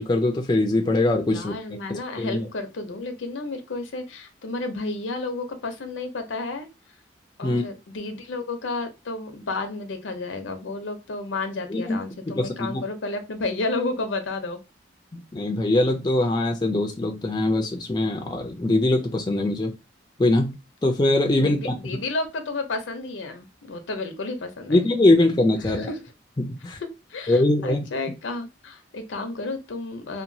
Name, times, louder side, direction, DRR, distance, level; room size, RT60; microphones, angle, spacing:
voice 1, 0.0-1.5 1.9-2.5 7.4-7.7 11.7-12.0 12.4-12.8 15.1-19.7 20.2-22.0 24.7-25.9 26.4-26.8 27.3-27.8, left 2 dB, 20° left, 0.3 m, -22 dB
voice 2, 1.3-6.7 7.4-14.6 21.4-24.9 25.6-26.0 27.1-30.2, left 3 dB, 85° left, 0.6 m, -31 dB
2.9 x 2.2 x 2.6 m
head